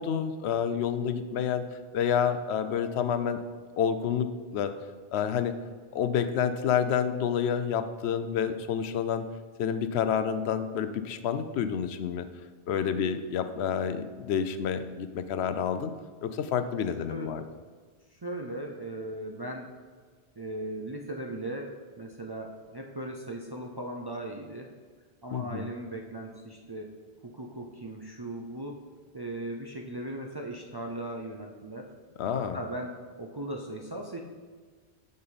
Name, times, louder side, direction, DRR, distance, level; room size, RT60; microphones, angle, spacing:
voice 1, 0.0-1.6 1.9-3.4 3.8-4.8 5.1-5.6 5.9-9.3 9.6-12.3 12.7-15.9 16.2-17.4 25.3-25.6 32.2-32.6, left 8 dB, 75° left, 10 dB, 0.8 m, -29 dB
voice 2, 18.1-19.7 20.4-24.7 25.2-28.8 29.1-31.9 32.3-34.2, right 1 dB, 35° right, 1 dB, 0.4 m, -38 dB
8.7 x 5.4 x 4.0 m, 1.5 s
omnidirectional pair, 1.1 m